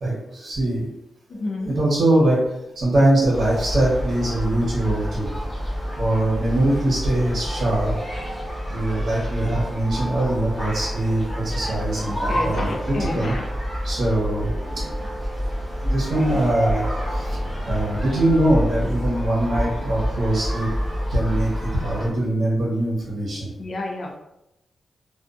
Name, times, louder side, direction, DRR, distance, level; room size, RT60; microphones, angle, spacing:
voice 1, 0.0-0.9 1.3-5.3 6.0-7.9 8.7-13.3 13.8-15.1 15.8-17.4 17.7-20.7 21.1-23.5, right 1 dB, 50° right, -6 dB, 0.9 m, -22 dB
voice 2, 1.3-1.7 12.3-13.5 17.5-17.7 23.6-24.2, left 2 dB, 50° left, 1 dB, 0.5 m, -30 dB
sound 1, 3.3-22.1, equal, 20° left, 1.1 m, -28 dB
2.5 x 2.2 x 2.4 m, 0.87 s
wide cardioid pair, 155°, 0 cm